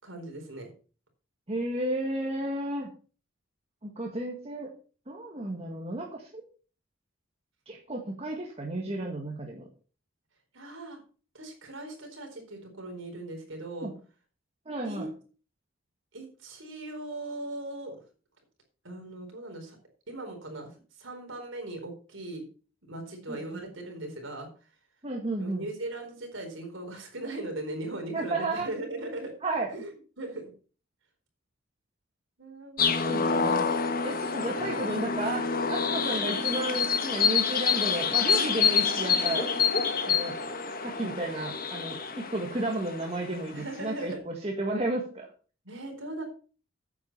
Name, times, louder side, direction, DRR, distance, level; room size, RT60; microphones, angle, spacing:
voice 1, 0.0-0.7 10.5-11.0 11.3-13.9 14.8-15.1 16.1-18.0 18.8-19.8 20.1-20.7 21.0-22.4 22.9-24.5 25.4-29.3 29.7-30.5 32.4-32.8 33.2-33.6 34.4-34.9 43.5-44.2 45.6-46.2, right 2 dB, 70° right, 3 dB, 4.3 m, -39 dB
voice 2, 1.5-2.9 3.8-4.7 5.1-6.4 7.7-9.7 13.8-13.9 14.6-15.1 23.3-23.6 25.0-25.7 28.1-28.7 29.4-29.7 32.8-33.7 34.0-39.5 40.1-40.3 40.8-45.3, right 2 dB, 30° right, 0 dB, 1.7 m, -33 dB
sound 1, 32.8-43.9, left 6 dB, 45° left, 1.4 m, -27 dB
9.6 x 8.2 x 5.5 m, 0.38 s
head